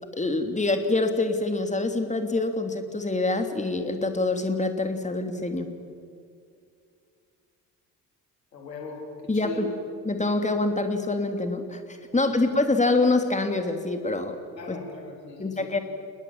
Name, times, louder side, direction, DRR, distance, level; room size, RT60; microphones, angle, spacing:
voice 1, 0.2-5.7 9.3-9.7 10.0-11.8 12.1-14.3 14.7-14.8 15.4-15.8, left 2 dB, 15° left, 6 dB, 3.1 m, -25 dB
voice 2, 8.5-9.0 9.3-9.6 14.6-15.8, left 3 dB, 90° left, 1 dB, 3.6 m, -39 dB
29.0 x 21.0 x 7.5 m, 2.3 s
figure-of-eight pair, 50°, 48 cm